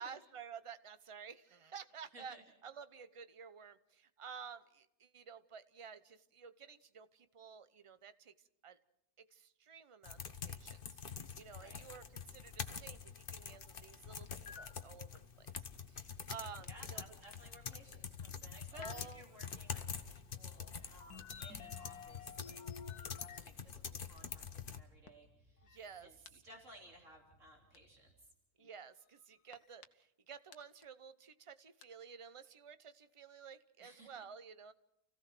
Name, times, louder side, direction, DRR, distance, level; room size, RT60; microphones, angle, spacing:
voice 1, 0.0-2.4 2.6-8.3 8.6-8.8 9.2-10.8 11.3-15.5 15.9-17.0 18.7-19.4 25.6-26.1 28.6-34.7, right 6 dB, 30° right, 12 dB, 0.6 m, -52 dB
sound 1, 10.0-24.8, left 6 dB, 40° left, 1.2 m, -46 dB
sound 2, 14.0-28.2, right 1 dB, 10° left, 5.4 m, -71 dB
sound 3, 14.3-14.9 15.2-15.3 15.5-15.6 16.4-16.7 17.2-17.4 17.7-17.9 18.3-19.1 19.5-19.9 20.5-23.5 23.9-24.0 24.2-24.3 24.6-24.7 25.1-25.2 25.6-26.3 27.7-27.8 28.6-28.7 29.5-29.8 30.5-30.6 30.8-30.9 31.8-31.9, left 7 dB, 75° left, 1.7 m, -53 dB
voice 2, 16.6-22.6 22.9-25.7 26.0-28.3 33.8-34.3, right 1 dB, 50° right, -1 dB, 4.0 m, -59 dB
29.5 x 16.0 x 6.1 m, 0.78 s
omnidirectional pair, 1.6 m